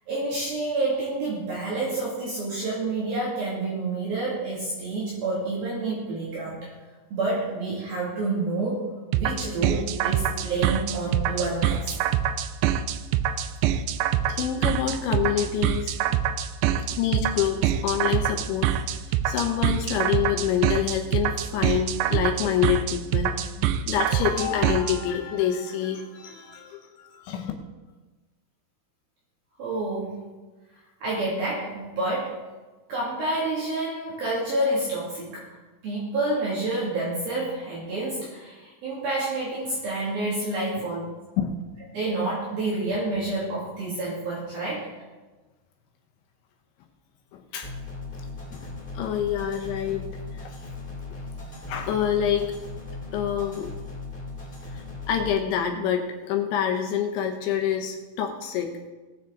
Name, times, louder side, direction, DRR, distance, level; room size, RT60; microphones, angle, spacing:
voice 1, 0.1-6.7 7.1-8.8 9.1-11.9 29.6-30.2 31.0-32.3 32.9-35.5 35.8-41.0 41.9-44.9, right 2 dB, 55° right, -7 dB, 3.7 m, -28 dB
sound 1, 9.1-25.0, right 10 dB, 85° right, 2.5 m, -24 dB
voice 2, 14.3-16.0 16.9-27.5 41.4-41.5 47.3-47.7 48.5-50.1 50.4-50.5 51.7-52.5 53.1-53.7 54.7-54.8 55.1-58.9, left 9 dB, 75° left, 3 dB, 3.0 m, -27 dB
sound 2, 47.6-55.3, left 3 dB, 20° left, 1.3 m, -38 dB
19.5 x 7.3 x 3.9 m, 1.2 s
omnidirectional pair, 5.8 m